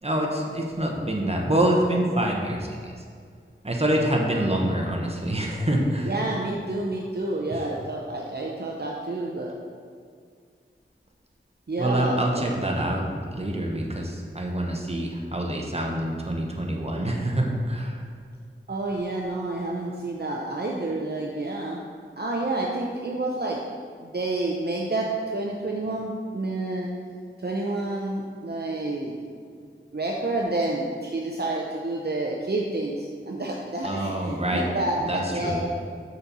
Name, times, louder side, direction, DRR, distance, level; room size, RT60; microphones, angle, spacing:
voice 1, 0.0-2.9 3.6-6.2 11.8-18.0 33.8-34.7 35.0-35.5, right 1 dB, 30° right, 0 dB, 1.1 m, -26 dB
voice 2, 6.0-9.5 11.7-12.5 18.7-21.8 22.2-23.6 24.0-26.9 27.4-29.1 29.9-35.7, right 2 dB, 50° right, -2 dB, 0.6 m, -29 dB
6.4 x 4.1 x 6.0 m, 2.1 s
wide cardioid pair, 45°, 21 cm